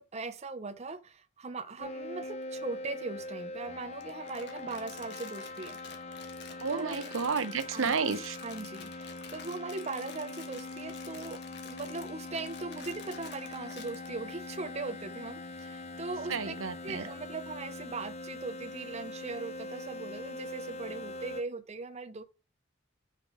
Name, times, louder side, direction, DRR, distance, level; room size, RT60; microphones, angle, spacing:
voice 1, 0.0-5.8 6.7-7.0 7.7-7.9 8.4-16.5 16.8-22.2, right 3 dB, 35° right, 0.6 m, -40 dB
sound 1, 1.8-21.4, left 2 dB, 35° left, 0.7 m, -42 dB
Crumpling crinkling, 4.0-14.1, left 6 dB, 55° left, 1.4 m, -50 dB
voice 2, 6.6-8.4 16.3-17.0, right 5 dB, 85° right, 0.8 m, -31 dB
5.8 x 5.0 x 4.9 m
head